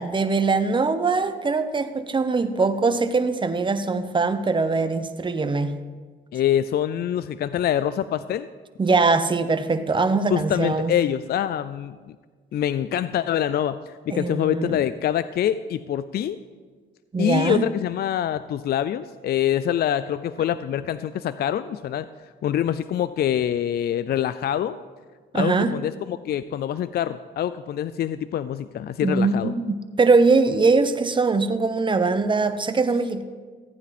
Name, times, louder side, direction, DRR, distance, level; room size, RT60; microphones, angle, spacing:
voice 1, 0.0-5.7 8.8-11.0 14.1-14.8 17.1-17.7 25.3-25.8 29.0-33.2, right 4 dB, 25° right, 10 dB, 0.8 m, -22 dB
voice 2, 6.3-8.5 10.3-12.2 12.5-16.4 17.2-22.1 22.4-24.8 25.3-29.5, left 10 dB, 55° left, 14 dB, 0.4 m, -25 dB
15.0 x 9.4 x 4.2 m, 1.5 s
cardioid pair, 90°, 20 cm